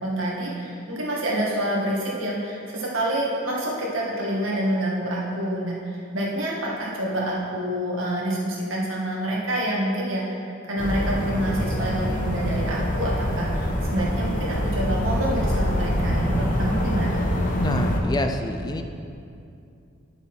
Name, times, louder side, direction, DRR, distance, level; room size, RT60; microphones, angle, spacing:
voice 1, 0.0-10.3 10.7-17.3, right 1 dB, 75° right, -4 dB, 2.0 m, -27 dB
sound 1, 10.8-18.0, left 1 dB, 40° left, 1.0 m, -25 dB
voice 2, 17.6-18.8, left 1 dB, 20° left, 6 dB, 0.4 m, -27 dB
9.7 x 6.8 x 4.4 m, 2.5 s
head